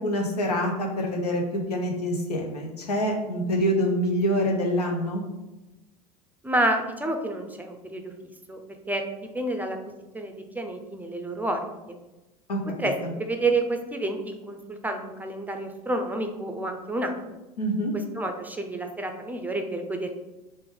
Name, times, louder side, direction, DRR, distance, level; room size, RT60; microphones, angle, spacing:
voice 1, 0.0-5.2 12.5-12.6 13.0-13.1 17.6-17.9, equal, 90° left, 1 dB, 0.7 m, -26 dB
voice 2, 6.4-8.1 8.5-8.6 8.9-9.0 9.3-9.8 10.1-11.6 11.9-12.0 12.8-12.9 13.2-17.1 18.1-20.1, right 2 dB, 10° right, 4 dB, 0.5 m, -29 dB
3.7 x 2.6 x 3.6 m, 1.0 s
hypercardioid pair, 80°, 20 cm